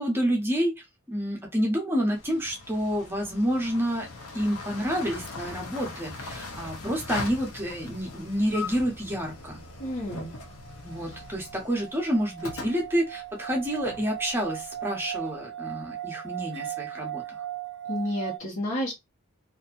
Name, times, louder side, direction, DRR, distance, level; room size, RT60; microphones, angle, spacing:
voice 1, 0.0-4.1 4.3-9.6 10.8-17.4, equal, 10° right, 0.7 m, -29 dB
sound 1, 2.1-15.1, left 3 dB, 80° left, 0.7 m, -40 dB
voice 2, 9.8-10.3 17.9-18.9, left 1 dB, 60° left, 1.1 m, -30 dB
sound 2, 10.0-18.4, right 12 dB, 50° right, 0.3 m, -38 dB
2.6 x 2.4 x 2.4 m
head